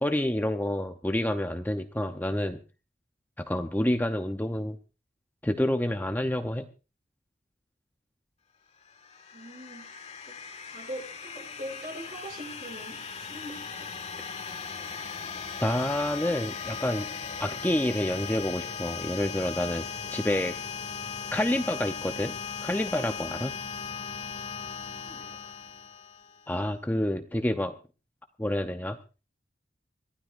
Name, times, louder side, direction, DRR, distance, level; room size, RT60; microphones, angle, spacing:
voice 1, 0.0-2.6 3.4-4.8 5.4-6.7 15.6-17.1 17.4-20.6 21.3-22.3 22.6-23.5 26.5-27.8 28.4-29.0, left 1 dB, 10° left, 6 dB, 0.7 m, -28 dB
sound 1, 8.8-26.5, left 6 dB, 35° left, 1.8 m, -38 dB
voice 2, 9.3-10.4 10.7-13.9 25.0-25.5, equal, 45° right, 2 dB, 7.2 m, -43 dB
24.5 x 15.5 x 2.6 m, 0.32 s
head